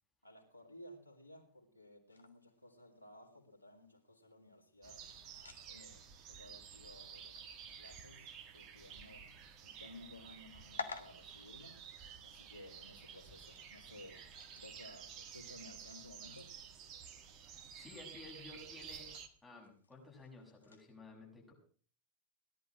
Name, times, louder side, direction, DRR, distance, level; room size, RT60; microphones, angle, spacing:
voice 1, 0.2-5.1 5.7-9.3 9.6-11.9 12.2-14.3 14.6-16.5, left 1 dB, 85° right, 3 dB, 2.4 m, -57 dB
sound 1, 2.1-20.9, left 4 dB, 75° left, 1.4 m, -55 dB
sound 2, 4.8-19.3, right 7 dB, 35° right, 1.7 m, -52 dB
voice 2, 17.7-21.5, left 3 dB, 10° left, -1 dB, 6.8 m, -54 dB
18.0 x 11.0 x 6.1 m, 0.43 s
figure-of-eight pair, 90°, 0 cm